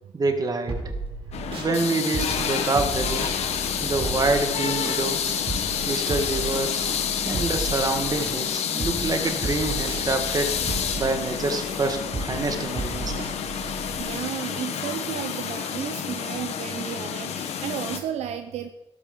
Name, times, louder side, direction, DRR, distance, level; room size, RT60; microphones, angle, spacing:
voice 1, 0.1-0.9 1.5-3.3 3.8-5.4 5.8-6.9 7.2-10.6 11.0-13.3, right 3 dB, 35° right, 5 dB, 1.7 m, -27 dB
sound 1, 0.7-1.7 2.1-8.4 8.8-14.0, right 3 dB, 55° right, 3.7 m, -34 dB
sound 2, 1.3-18.0, left 8 dB, 75° left, 1.1 m, -29 dB
voice 2, 14.0-18.7, right 10 dB, 80° right, 8 dB, 0.6 m, -33 dB
13.0 x 12.5 x 3.8 m, 0.96 s
cardioid pair, 75°, 11 cm